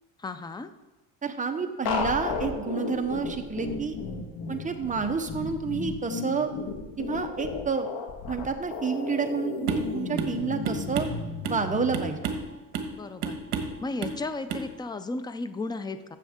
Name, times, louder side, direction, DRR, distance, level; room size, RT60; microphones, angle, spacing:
voice 1, 0.2-0.7 12.9-13.4 13.8-16.2, left 3 dB, 10° left, 11 dB, 0.4 m, -34 dB
voice 2, 1.2-4.0 4.5-6.5 7.0-7.9 8.3-11.1 11.5-12.2, right 5 dB, 20° right, 5 dB, 0.9 m, -29 dB
sound 1, 1.9-12.1, left 4 dB, 70° left, 1.7 m, -33 dB
sound 2, 9.7-9.9 10.2-10.4 10.7-11.6 11.9-12.5 12.7-13.0 13.2-13.8 14.0-14.2 14.5-14.7, right 5 dB, 65° right, 1.4 m, -30 dB
13.5 x 7.5 x 3.6 m, 1.1 s
cardioid pair, 130°, 41 cm